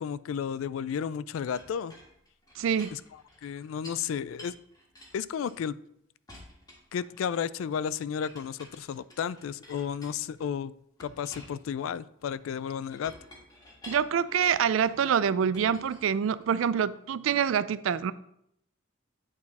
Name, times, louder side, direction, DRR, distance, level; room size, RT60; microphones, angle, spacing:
voice 1, 0.0-1.9 2.9-3.0 3.4-4.5 5.1-5.8 6.9-10.7 11.0-13.1, left 7 dB, 70° left, 18 dB, 0.3 m, -33 dB
Chink clink, 1.5-4.1 4.4-5.9 6.3-7.5 8.2-10.5 11.0-15.0 15.5-16.7, left 1 dB, 20° left, 1.7 m, -51 dB
voice 2, 2.6-2.9 13.9-18.1, right 7 dB, 65° right, 16 dB, 0.3 m, -26 dB
8.6 x 4.7 x 4.1 m, 0.73 s
head